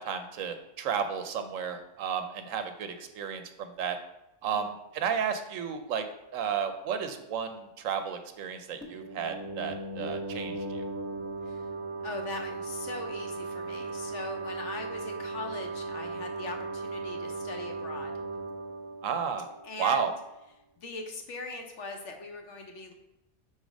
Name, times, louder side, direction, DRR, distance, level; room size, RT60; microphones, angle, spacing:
voice 1, 0.0-4.0 4.4-6.1 6.3-10.8 19.0-19.5 19.8-20.1, right 7 dB, 70° right, 7 dB, 0.9 m, -32 dB
sound 1, 8.8-20.2, right 3 dB, 15° right, 0.8 m, -37 dB
voice 2, 12.0-18.1 19.6-20.1 20.8-22.9, left 3 dB, 60° left, 3 dB, 1.0 m, -40 dB
4.9 x 4.0 x 5.1 m, 0.92 s
omnidirectional pair, 1.5 m